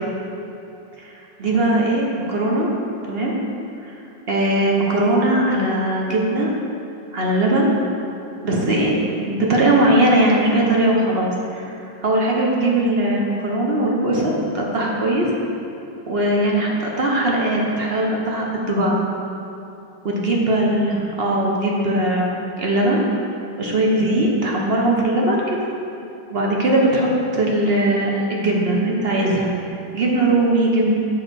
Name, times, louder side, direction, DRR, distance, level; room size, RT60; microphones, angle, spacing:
voice 1, 1.4-2.7 3.0-3.4 3.8-3.9 4.3-6.5 7.1-7.7 8.4-11.7 12.0-15.3 16.1-19.0 20.0-22.3 22.6-23.0 23.6-25.6 26.3-29.5 29.9-30.9, right 1 dB, 40° right, -2 dB, 1.0 m, -19 dB
7.6 x 4.8 x 6.3 m, 2.8 s
omnidirectional pair, 2.1 m